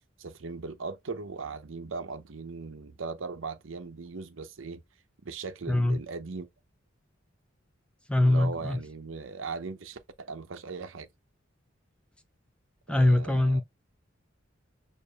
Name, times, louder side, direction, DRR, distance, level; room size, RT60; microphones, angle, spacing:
voice 1, 0.2-4.8 5.2-6.5 8.2-11.1 12.9-13.6, right 4 dB, 70° right, 0.7 m, -38 dB
voice 2, 5.7-6.0 8.1-8.8 12.9-13.6, left 1 dB, 5° left, 0.3 m, -23 dB
6.5 x 2.6 x 2.3 m
head